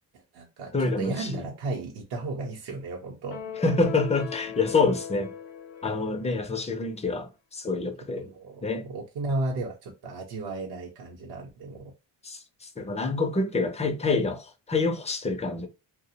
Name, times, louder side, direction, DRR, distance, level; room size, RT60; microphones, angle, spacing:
voice 1, 0.1-3.4 8.1-11.9, right 2 dB, 55° right, 0.7 m, -34 dB
voice 2, 0.7-1.3 3.6-5.3 5.8-8.3 8.6-8.9 12.2-15.7, left 3 dB, 15° left, 0.4 m, -27 dB
sound 1, 3.3-6.8, left 9 dB, 70° left, 0.7 m, -39 dB
2.4 x 2.0 x 2.7 m
cardioid pair, 85°, 47 cm